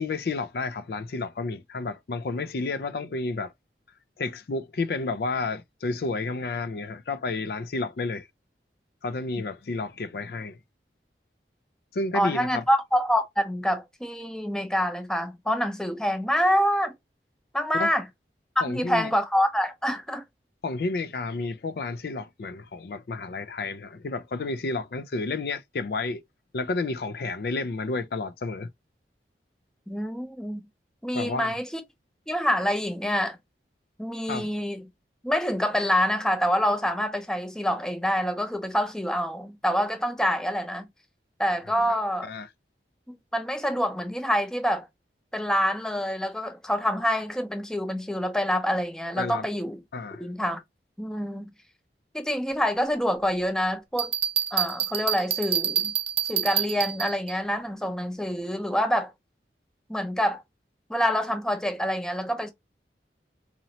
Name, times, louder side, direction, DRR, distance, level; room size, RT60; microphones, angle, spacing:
voice 1, 0.0-3.5 4.2-8.3 9.0-10.6 11.9-12.6 17.7-17.9 18.6-19.1 20.6-26.2 26.5-28.7 31.1-31.5 34.3-34.5 41.7-42.0 42.3-42.5 49.2-49.5 49.9-50.2, left 3 dB, 60° left, 0.4 m, -31 dB
voice 2, 12.1-16.9 17.5-18.0 18.7-20.2 29.9-30.6 31.0-31.8 32.3-33.4 34.0-34.9 35.2-40.9 41.4-42.3 43.1-44.9 45.3-49.8 50.2-50.6 51.0-51.5 52.1-54.1 54.5-55.9 56.3-59.1 59.9-60.4 60.9-62.5, equal, 5° left, 0.6 m, -26 dB
Bell, 54.0-57.3, right 9 dB, 35° right, 0.6 m, -27 dB
4.1 x 3.0 x 2.7 m
head